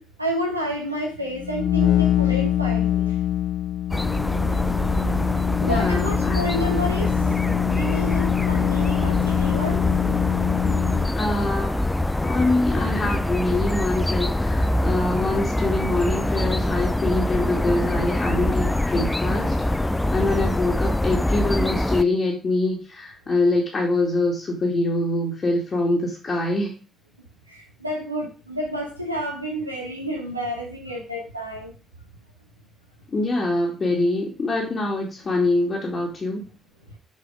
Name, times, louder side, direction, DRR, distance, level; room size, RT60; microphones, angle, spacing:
voice 1, 0.0-3.1 5.6-7.2 7.7-9.8 27.5-31.7, equal, 90° right, 0 dB, 1.3 m, -30 dB
sound 1, 1.3-11.2, left 11 dB, 55° left, 0.3 m, -24 dB
sound 2, 3.9-22.0, left 1 dB, 10° left, 0.6 m, -24 dB
voice 2, 5.7-6.4 11.2-11.8 12.2-26.7 33.1-36.4, left 2 dB, 40° left, -2 dB, 2.1 m, -24 dB
7.2 x 4.8 x 4.9 m, 0.35 s
figure-of-eight pair, 40°, 0 cm